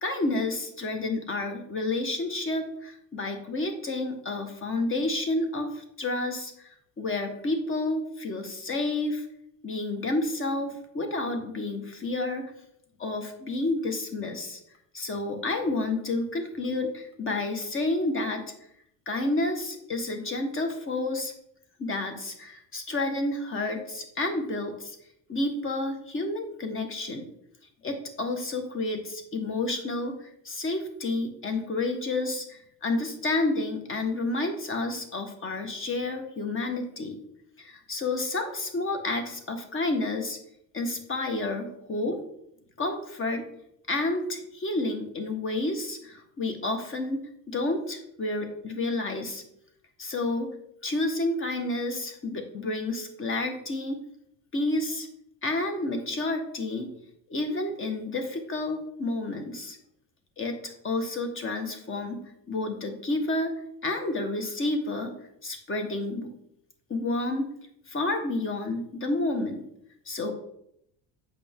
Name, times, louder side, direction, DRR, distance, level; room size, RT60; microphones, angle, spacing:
voice 1, 0.0-9.3 9.6-12.4 13.0-14.6 14.9-18.4 19.1-21.3 21.8-25.0 25.3-27.2 27.8-37.2 37.6-40.4 40.7-42.2 42.8-43.4 43.9-47.2 47.5-49.4 50.0-50.5 50.8-54.0 54.5-55.1 55.4-56.9 57.3-59.8 60.4-63.5 63.8-65.2 65.4-66.3 66.9-67.5 67.9-69.6 70.1-70.3, left 2 dB, 30° left, 5 dB, 1.5 m, -30 dB
8.1 x 6.1 x 3.7 m, 0.73 s
cardioid pair, 120°, 39 cm